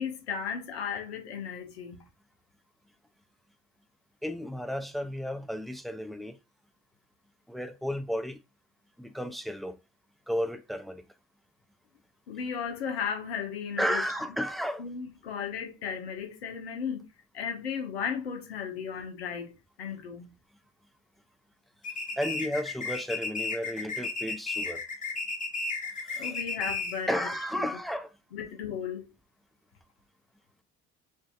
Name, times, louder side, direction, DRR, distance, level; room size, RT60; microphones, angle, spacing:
voice 1, 0.0-2.0 12.3-14.0 14.8-17.1 17.3-20.3 26.2-27.7 28.3-29.1, left 7 dB, 85° left, 0.8 m, -35 dB
voice 2, 4.2-6.4 7.5-8.4 9.0-9.8 10.3-11.0 13.8-14.8 22.1-24.8 26.1-26.4 27.1-28.1, equal, ahead, 0.4 m, -33 dB
sound 1, 21.8-27.1, left 4 dB, 25° left, 0.9 m, -34 dB
4.9 x 2.7 x 2.4 m
hypercardioid pair, 65°, 30 cm